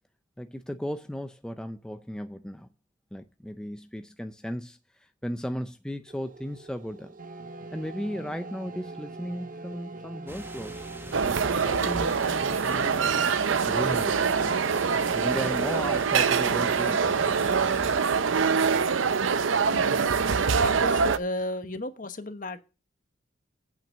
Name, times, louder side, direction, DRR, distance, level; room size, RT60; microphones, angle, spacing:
voice 1, 0.4-2.7 3.1-7.2 7.7-10.9 11.2-13.2 13.7-14.5 15.1-17.3, equal, 5° left, 0.4 m, -36 dB
sound 1, 6.1-17.4, right 3 dB, 45° right, 0.7 m, -42 dB
sound 2, 10.3-18.0, right 1 dB, 10° right, 0.9 m, -43 dB
sound 3, 11.1-21.2, right 5 dB, 85° right, 0.6 m, -24 dB
voice 2, 20.6-22.6, left 1 dB, 45° left, 1.1 m, -34 dB
9.1 x 5.8 x 7.1 m
head